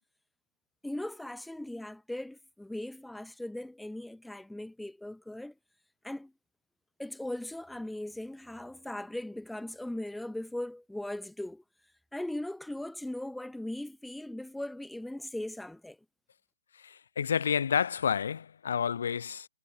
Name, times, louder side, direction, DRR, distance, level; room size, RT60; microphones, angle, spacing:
voice 1, 0.8-5.5 6.0-6.3 7.0-11.6 12.1-16.0, left 1 dB, ahead, 1.7 m, -39 dB
voice 2, 16.8-19.5, left 7 dB, 65° left, 4.1 m, -30 dB
hypercardioid pair, 150°, 0 cm